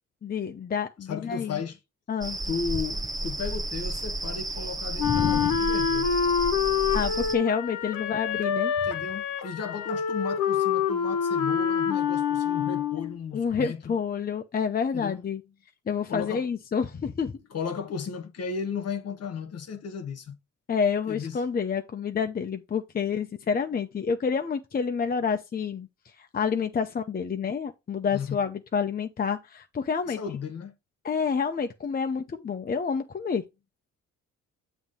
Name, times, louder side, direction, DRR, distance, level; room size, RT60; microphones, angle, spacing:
voice 1, 0.2-1.6 2.1-2.4 5.0-5.5 6.9-8.7 13.3-15.4 15.9-17.3 20.7-25.9 26.2-30.2 31.0-33.4, left 6 dB, 30° left, 0.7 m, -28 dB
voice 2, 1.1-1.8 2.4-6.1 8.8-13.9 14.9-15.2 16.1-16.4 17.5-20.4 21.1-21.4 28.1-28.3 30.1-30.7, left 6 dB, 55° left, 1.3 m, -35 dB
sound 1, 2.2-7.4, right 2 dB, 10° right, 0.8 m, -32 dB
Wind instrument woodwind instrument, 5.0-13.2, left 7 dB, 90° left, 0.9 m, -26 dB
7.2 x 3.0 x 5.4 m
cardioid pair, 90°, 30 cm